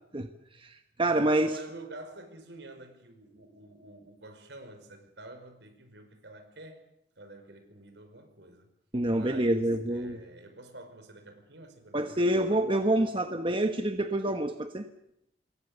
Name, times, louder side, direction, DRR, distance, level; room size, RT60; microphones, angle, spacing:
voice 1, 0.6-1.5 8.9-10.2 11.9-14.8, right 1 dB, 30° right, 1.3 m, -27 dB
voice 2, 1.5-6.8 7.2-8.7 9.1-12.5 12.7-13.3, right 2 dB, 75° right, 5.5 m, -48 dB
27.0 x 22.5 x 6.9 m
head